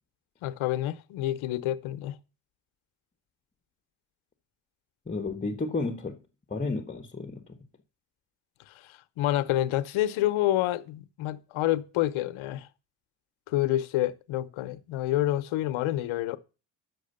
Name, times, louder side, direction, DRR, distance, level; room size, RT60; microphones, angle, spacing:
voice 1, 0.4-2.2 8.9-12.7 13.5-16.4, left 14 dB, 80° left, 1.0 m, -28 dB
voice 2, 5.1-6.2 6.5-7.6, left 3 dB, 15° left, 1.1 m, -32 dB
9.5 x 6.4 x 6.6 m
cardioid pair, 95°, 48 cm